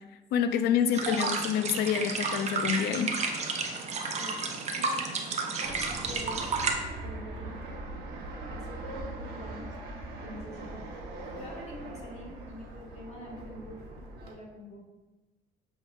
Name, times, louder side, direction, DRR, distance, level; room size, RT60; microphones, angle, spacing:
voice 1, 0.3-3.1, left 8 dB, 75° left, 10 dB, 0.4 m, -27 dB
sound 1, 0.9-6.8, right 4 dB, 40° right, 0.6 m, -31 dB
voice 2, 4.7-5.1 5.4-6.6 7.0-7.7 8.5-9.8 10.2-10.9 11.3-14.8, equal, 40° left, -4 dB, 1.5 m, -45 dB
Fixed-wing aircraft airplane, 5.6-14.3, right 2 dB, 75° right, 0.9 m, -41 dB
7.9 x 2.8 x 2.4 m, 1.1 s
cardioid pair, 110°, 17 cm